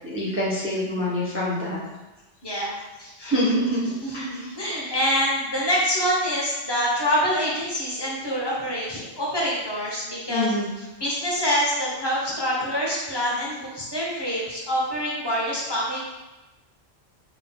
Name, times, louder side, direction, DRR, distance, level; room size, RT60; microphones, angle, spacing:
voice 1, 0.0-1.8 3.2-4.5 4.8-4.9 10.3-10.7, equal, 20° right, -7 dB, 0.4 m, -26 dB
voice 2, 2.4-3.3 4.0-10.5 11.0-16.0, equal, 25° left, -5 dB, 0.8 m, -26 dB
3.8 x 3.7 x 2.2 m, 1.1 s
omnidirectional pair, 1.3 m